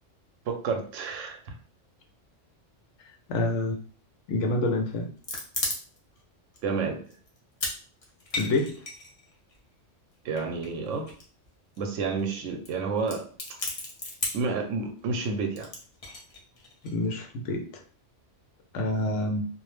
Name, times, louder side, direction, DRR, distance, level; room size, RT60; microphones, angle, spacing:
voice 1, 0.5-1.6 6.6-7.0 10.2-11.1 11.8-13.3 14.3-15.7, right 4 dB, 85° right, 4 dB, 0.9 m, -30 dB
voice 2, 3.3-3.8 4.3-5.1 8.3-8.8 16.8-17.7 18.7-19.4, left 2 dB, 75° left, 4 dB, 0.9 m, -27 dB
sound 1, 5.0-6.2 6.5-6.6 7.1-7.8 8.0-9.6 10.4-11.5 11.7-11.8 12.0-12.2 12.6-12.7 13.0-14.5 15.6-16.9, left 2 dB, 40° left, 0.6 m, -34 dB
2.4 x 2.1 x 3.1 m, 0.42 s
omnidirectional pair, 1.3 m